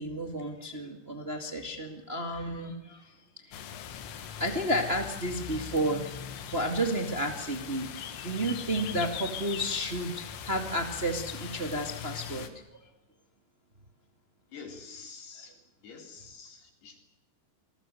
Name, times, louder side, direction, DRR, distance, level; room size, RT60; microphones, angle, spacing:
voice 1, 0.0-3.1 3.5-3.6 4.4-6.1 6.5-12.5, right 1 dB, 60° right, 4 dB, 0.6 m, -32 dB
sound 1, 3.5-12.5, left 9 dB, 85° left, 4.4 m, -41 dB
voice 2, 14.5-15.5 15.8-17.0, left 5 dB, 60° left, 3 dB, 5.7 m, -47 dB
29.0 x 21.0 x 7.9 m, 0.86 s
omnidirectional pair, 5.5 m